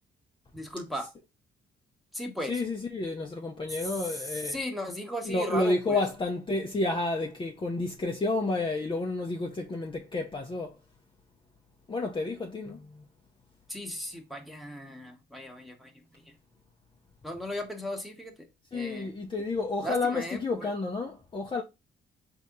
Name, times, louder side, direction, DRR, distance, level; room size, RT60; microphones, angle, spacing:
voice 1, 0.5-1.1 2.1-2.6 3.7-6.1 13.7-16.3 17.2-18.3 18.7-19.1 19.8-20.7, equal, ahead, 1.1 m, -37 dB
voice 2, 2.5-4.6 5.3-10.7 11.9-13.0 18.7-21.6, left 2 dB, 25° left, 0.7 m, -30 dB
4.1 x 2.9 x 3.7 m
cardioid pair, 90°, 20 cm